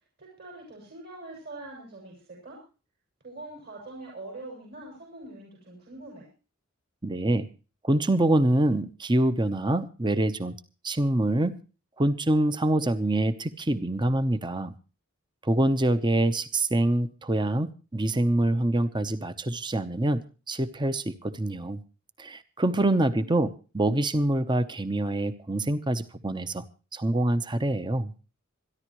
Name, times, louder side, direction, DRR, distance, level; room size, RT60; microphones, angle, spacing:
voice 1, 0.2-2.6 3.2-6.3, right 2 dB, 50° right, -2 dB, 6.8 m, -44 dB
voice 2, 7.0-7.5 7.8-10.6 10.8-11.6 12.0-14.7 15.4-21.8 22.2-26.6 26.9-28.1, right 1 dB, 20° right, 11 dB, 0.9 m, -25 dB
27.0 x 11.0 x 3.1 m, 0.34 s
head